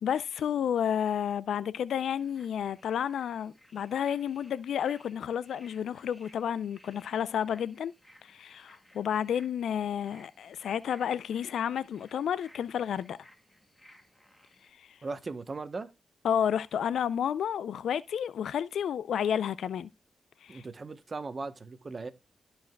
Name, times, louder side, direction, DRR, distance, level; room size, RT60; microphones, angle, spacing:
voice 1, 0.0-7.9 8.2-13.2 14.8-15.0 16.2-19.9 20.4-20.6, left 8 dB, 85° left, 0.3 m, -31 dB
sound 1, 2.0-14.7, left 1 dB, 10° left, 2.0 m, -60 dB
voice 2, 15.0-15.9 20.5-22.1, right 3 dB, 45° right, 0.9 m, -38 dB
13.5 x 4.7 x 2.2 m
cardioid pair, 55°, 0 cm